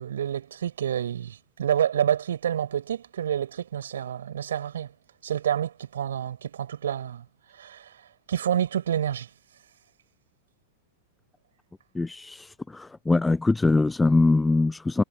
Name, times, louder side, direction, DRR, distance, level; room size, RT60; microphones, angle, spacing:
voice 1, 0.0-4.9 5.2-7.2 7.6-7.9 8.3-9.3, right 9 dB, 65° right, 5.9 m, -28 dB
voice 2, 11.9-15.0, left 3 dB, 10° left, 0.8 m, -23 dB
figure-of-eight pair, 90°, 0 cm